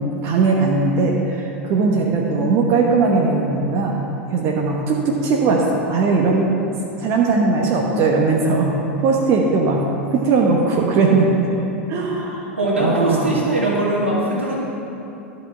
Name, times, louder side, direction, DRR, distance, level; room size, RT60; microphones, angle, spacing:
voice 1, 0.0-4.0 4.3-6.5 7.0-9.8 10.1-11.5 11.9-12.5 12.8-13.4, right 3 dB, 40° right, -1 dB, 1.0 m, -19 dB
voice 2, 12.6-14.6, right 1 dB, 85° right, -5 dB, 2.3 m, -20 dB
12.0 x 5.4 x 5.8 m, 2.9 s
figure-of-eight pair, 85°, 7 cm